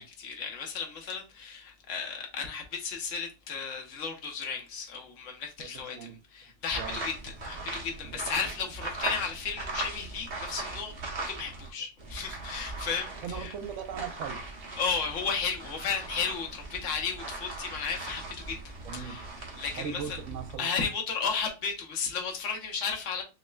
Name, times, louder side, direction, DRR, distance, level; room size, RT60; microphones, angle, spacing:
voice 1, 0.0-10.9 11.3-13.5 14.8-18.6 18.9-19.3 19.6-20.2 20.6-23.2, left 6 dB, 80° left, 1.2 m, -34 dB
voice 2, 5.6-6.2 6.7-7.0 8.0-8.3 13.2-14.4 18.8-19.2 19.8-20.7, right 7 dB, 85° right, 1.0 m, -39 dB
sound 1, 6.7-11.7 12.0-20.6, right 2 dB, 50° right, 1.2 m, -39 dB
6.2 x 2.1 x 2.3 m
omnidirectional pair, 1.3 m